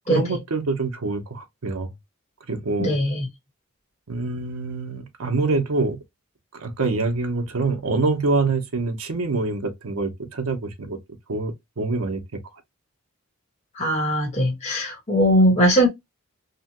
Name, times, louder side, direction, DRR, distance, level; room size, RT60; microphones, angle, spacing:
voice 1, 0.1-1.9 2.5-2.9 4.1-6.0 6.5-11.0 11.3-12.2, right 3 dB, 85° right, 0.8 m, -25 dB
voice 2, 2.8-3.3 13.8-15.9, equal, 30° left, 1.1 m, -20 dB
2.9 x 2.2 x 2.9 m
head